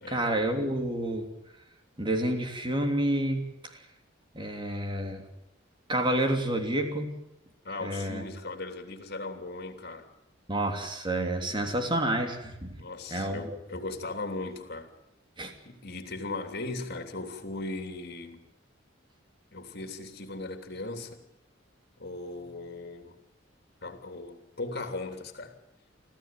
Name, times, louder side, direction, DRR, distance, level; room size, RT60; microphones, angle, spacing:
voice 1, 0.1-1.3 2.0-3.8 4.3-5.2 5.9-7.2 7.8-8.2 10.5-12.7 13.1-13.6 15.4-15.5, right 1 dB, 25° right, 5 dB, 3.2 m, -29 dB
voice 2, 7.6-10.1 12.8-14.9 15.6-18.4 19.5-21.2 22.0-23.2 23.8-25.6, left 2 dB, 55° left, 7 dB, 3.1 m, -38 dB
25.5 x 15.0 x 9.2 m, 0.86 s
head